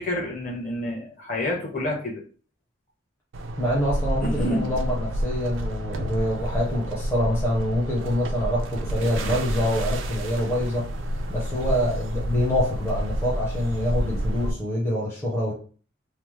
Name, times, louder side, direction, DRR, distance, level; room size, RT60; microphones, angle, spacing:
voice 1, 0.0-2.2 4.2-4.8, left 1 dB, 40° left, -2 dB, 1.0 m, -28 dB
sound 1, 3.3-14.5, right 1 dB, 75° right, 0.4 m, -29 dB
voice 2, 3.6-10.8 11.3-15.5, equal, 10° left, -5 dB, 0.6 m, -25 dB
3.1 x 2.0 x 3.1 m, 0.40 s
head